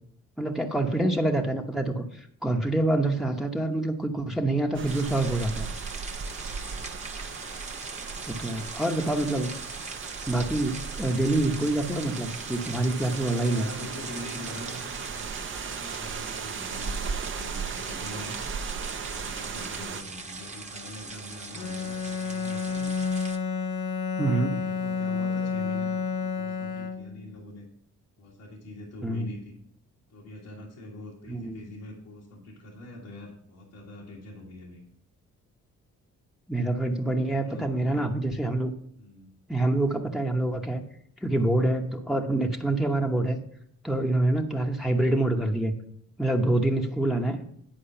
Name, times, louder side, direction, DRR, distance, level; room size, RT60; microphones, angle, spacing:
voice 1, 0.4-5.7 8.3-9.5 10.3-13.7 24.2-24.6 29.0-29.3 31.3-31.7 36.5-38.7 39.5-40.8 41.2-43.4 43.8-45.8 46.2-47.4, right 2 dB, ahead, 1 dB, 0.9 m, -26 dB
sound 1, 4.7-20.0, right 6 dB, 40° right, 0.7 m, -37 dB
sound 2, 4.9-23.4, right 3 dB, 25° right, 1.1 m, -41 dB
voice 2, 6.4-6.8 8.1-8.9 13.2-15.3 15.6-18.4 18.9-23.0 24.2-27.7 28.2-29.5 30.1-34.8 37.2-38.0 39.0-39.3, left 1 dB, 90° left, -5 dB, 1.9 m, -44 dB
Bowed string instrument, 21.5-27.3, left 5 dB, 70° left, 0.8 m, -30 dB
10.5 x 4.7 x 5.7 m, 0.66 s
cardioid pair, 90°, 30 cm